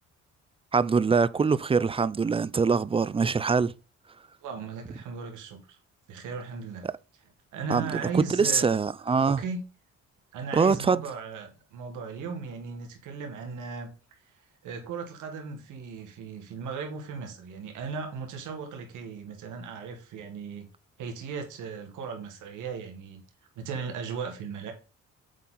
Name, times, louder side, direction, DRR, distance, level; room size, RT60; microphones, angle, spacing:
voice 1, 0.7-3.7 6.8-6.9 7.7-9.4 10.5-11.0, right 5 dB, 20° right, 0.3 m, -24 dB
voice 2, 4.4-5.8 6.1-6.9 7.5-8.7 9.3-9.6 10.3-13.9 14.6-20.7 21.0-23.2 23.6-24.7, right 5 dB, 85° right, 1.8 m, -37 dB
7.3 x 4.3 x 3.8 m
cardioid pair, 90°, 30 cm